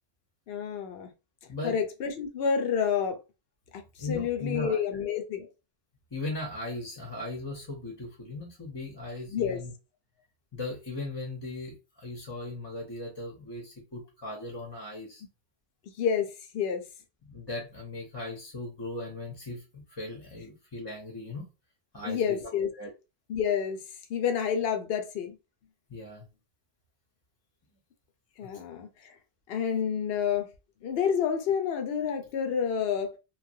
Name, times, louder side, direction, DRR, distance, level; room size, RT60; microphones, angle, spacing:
voice 1, 0.5-1.1 1.6-3.2 3.7-3.8 4.1-5.5 9.3-9.6 16.0-16.8 22.0-22.7 23.3-23.8 24.1-25.4 28.4-29.1 29.5-30.5 30.8-33.2, left 7 dB, 65° left, 0.8 m, -29 dB
voice 2, 1.5-1.8 4.0-4.8 6.1-9.7 10.5-15.2 17.3-21.5 21.9-22.9 25.9-26.3 28.4-28.5, left 2 dB, 25° left, 0.7 m, -38 dB
3.1 x 2.2 x 2.6 m
omnidirectional pair, 1.1 m